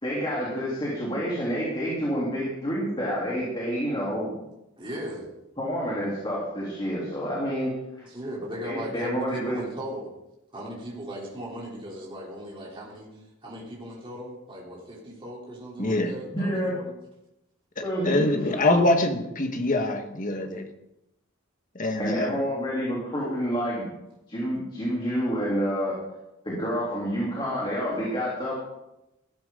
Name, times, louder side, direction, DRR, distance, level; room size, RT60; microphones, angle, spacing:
voice 1, 0.0-4.3 5.6-8.1 8.6-9.6 16.3-16.8 17.8-18.2 22.0-23.9 24.3-26.0 26.4-28.5, equal, 25° left, -6 dB, 3.5 m, -28 dB
voice 2, 4.8-5.3 8.0-10.1 10.5-13.1 13.4-16.9, right 1 dB, 25° right, -4 dB, 3.7 m, -37 dB
voice 3, 15.8-16.1 18.0-20.6 21.7-22.4, left 2 dB, 40° left, 5 dB, 1.5 m, -24 dB
15.0 x 13.0 x 3.9 m, 0.89 s
head